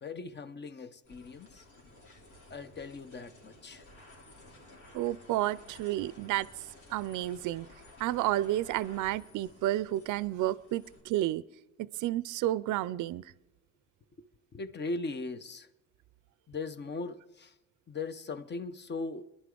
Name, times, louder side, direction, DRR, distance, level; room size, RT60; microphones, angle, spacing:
voice 1, 0.0-1.6 2.5-3.8 14.5-15.7 16.5-17.5 17.9-19.2, left 3 dB, 35° left, 0.8 m, -39 dB
sound 1, 1.0-11.0, left 1 dB, 75° left, 3.5 m, -55 dB
voice 2, 4.9-6.5 6.9-7.7 8.0-11.4 11.8-13.3, right 14 dB, 80° right, 0.5 m, -31 dB
21.5 x 11.0 x 3.8 m
cardioid pair, 90°, 30 cm